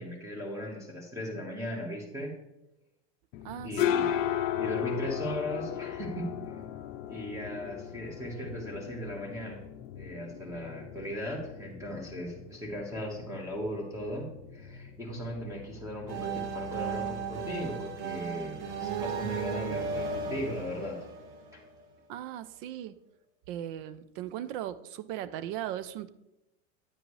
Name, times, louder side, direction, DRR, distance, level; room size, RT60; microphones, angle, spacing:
voice 1, 0.0-2.3 3.6-4.1 4.6-6.3 7.1-9.6 9.9-21.0 21.5-21.6, equal, 10° right, -1 dB, 1.4 m, -37 dB
sound 1, 3.3-20.8, left 11 dB, 45° left, 0.6 m, -37 dB
voice 2, 3.4-4.2 22.1-23.0 23.5-26.1, right 11 dB, 50° right, 15 dB, 0.5 m, -38 dB
sound 2, 16.1-21.8, right 5 dB, 85° right, 1.4 m, -35 dB
9.5 x 7.7 x 3.2 m, 0.90 s
supercardioid pair, 150°, 35 cm